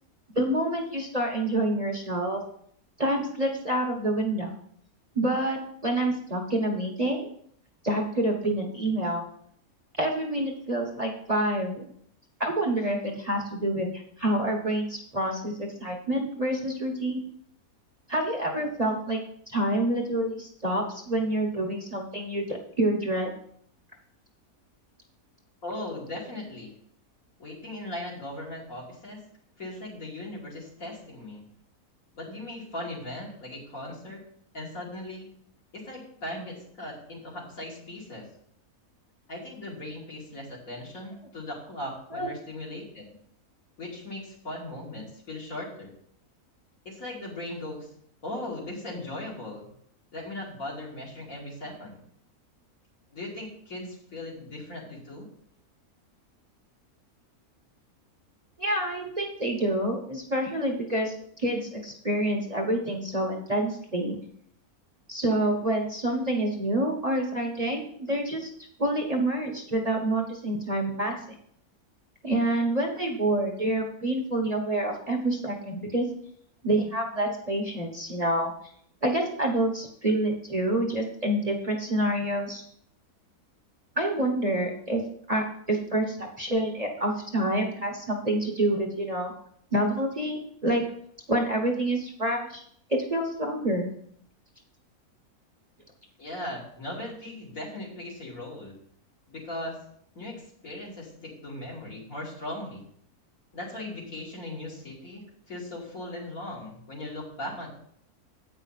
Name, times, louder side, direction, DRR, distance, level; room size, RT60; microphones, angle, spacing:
voice 1, 0.3-2.4 3.0-4.5 5.1-7.3 7.8-9.2 10.0-11.8 12.4-17.2 18.1-19.2 19.5-23.4 42.1-42.3 58.6-64.2 65.1-68.5 68.8-71.2 72.2-76.1 76.6-78.5 79.0-82.6 84.0-85.0 85.3-89.3 89.7-90.8 91.3-92.6 92.9-93.9, right 1 dB, 30° right, 0 dB, 1.1 m, -27 dB
voice 2, 25.6-26.7 27.4-29.2 29.6-31.4 32.1-34.2 34.5-35.3 35.7-38.3 39.3-43.0 43.8-45.9 46.8-47.9 48.2-49.7 50.1-52.0 53.1-55.3 96.2-98.7 99.3-99.8 100.1-102.8 103.5-107.7, left 1 dB, 65° left, -4 dB, 3.1 m, -38 dB
8.6 x 5.6 x 5.7 m, 0.66 s
omnidirectional pair, 1.5 m